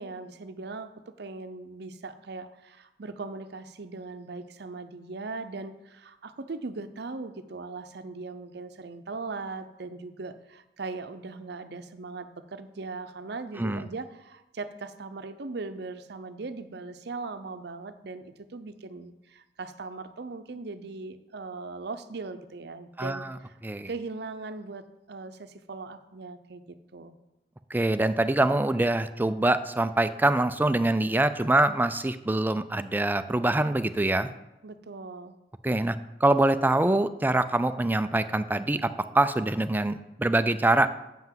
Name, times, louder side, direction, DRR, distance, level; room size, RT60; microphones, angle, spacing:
voice 1, 0.0-23.6 23.9-27.1 34.6-35.4, right 3 dB, 65° right, 11 dB, 0.7 m, -39 dB
voice 2, 23.0-23.3 23.6-23.9 27.7-34.3 35.6-36.0 36.2-38.9 39.1-40.9, right 2 dB, 10° right, 11 dB, 0.4 m, -24 dB
7.7 x 5.8 x 7.4 m, 0.94 s
head